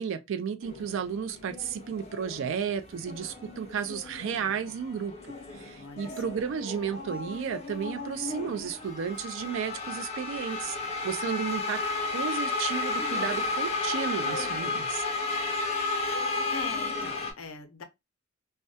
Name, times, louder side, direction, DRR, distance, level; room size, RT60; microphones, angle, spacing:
voice 1, 0.0-10.8 11.0-11.8 12.1-15.0, right 7 dB, 65° right, 0.3 m, -33 dB
sound 1, 0.6-17.3, left 3 dB, 30° left, 0.5 m, -33 dB
voice 2, 5.7-6.1 16.5-17.8, left 4 dB, 75° left, 0.6 m, -41 dB
2.2 x 2.1 x 2.6 m
head